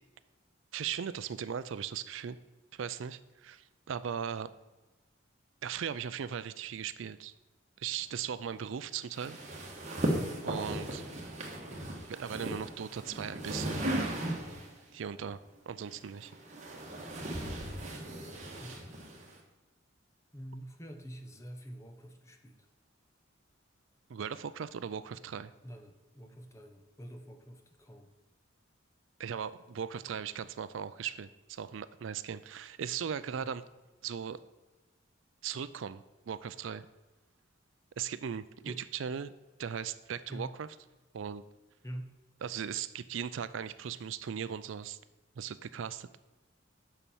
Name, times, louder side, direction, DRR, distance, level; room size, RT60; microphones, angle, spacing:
voice 1, 0.7-2.4 2.7-4.5 5.6-7.3 7.8-9.4 10.4-11.0 12.1-13.8 14.9-15.4 15.7-16.3 24.1-25.5 29.2-33.6 34.0-34.4 35.4-36.9 38.0-39.3 39.6-40.8 41.1-41.4 42.4-45.0 45.4-46.1, right 7 dB, 75° right, 14 dB, 0.4 m, -38 dB
sound 1, 9.1-14.8 15.8-19.4, right 1 dB, 35° right, 1.5 m, -37 dB
voice 2, 18.6-19.0 20.3-22.6 25.6-28.1 33.4-33.5 38.6-38.8 40.3-40.6 41.8-42.1, equal, 15° left, 5 dB, 0.8 m, -46 dB
7.1 x 5.8 x 6.9 m, 1.1 s
head